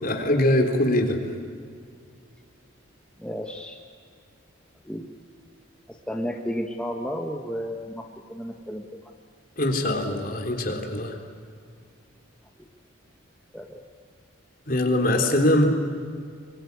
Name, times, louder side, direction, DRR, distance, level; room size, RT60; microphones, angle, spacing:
voice 1, 0.0-1.2 9.6-11.2 14.7-15.7, left 1 dB, 45° left, 4 dB, 3.6 m, -22 dB
voice 2, 3.2-3.8 4.8-5.1 5.9-8.8 13.5-13.8, equal, 5° left, 1 dB, 1.4 m, -32 dB
26.5 x 23.5 x 9.6 m, 2.2 s
head